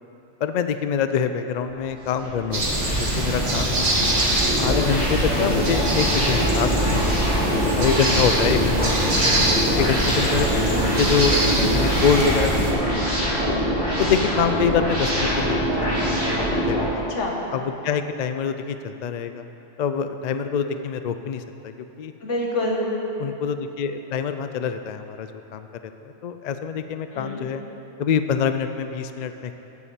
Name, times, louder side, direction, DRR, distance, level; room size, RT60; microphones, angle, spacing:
voice 1, 0.4-4.1 4.6-10.5 11.0-13.6 14.0-17.0 17.5-19.4 19.8-22.1 23.2-27.6 28.0-29.5, left 6 dB, 60° left, 9 dB, 0.4 m, -26 dB
sound 1, 1.7-16.8, equal, 25° right, 2.6 m, -24 dB
sound 2, 2.5-12.7, right 1 dB, 80° right, 2.0 m, -23 dB
voice 2, 10.4-10.8 17.0-17.5 22.2-23.0 27.1-27.4, left 1 dB, 80° left, 0 dB, 1.6 m, -27 dB
8.6 x 7.0 x 7.4 m, 3.0 s
omnidirectional pair, 1.2 m